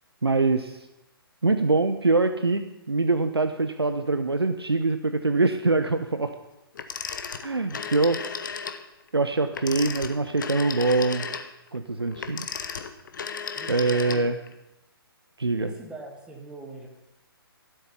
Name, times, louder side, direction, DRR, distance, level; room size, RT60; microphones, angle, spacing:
voice 1, 0.2-0.9 1.4-6.3 7.4-8.2 9.1-11.3 11.7-12.5 13.7-14.4 15.4-15.7, right 3 dB, 85° right, 9 dB, 0.7 m, -24 dB
Telephone, 6.8-8.8 9.5-14.5, left 6 dB, 50° left, 0.9 m, -34 dB
voice 2, 13.6-14.3 15.6-16.9, right 2 dB, 5° right, 1 dB, 1.5 m, -42 dB
12.5 x 8.0 x 5.6 m, 0.94 s
figure-of-eight pair, 130°, 13 cm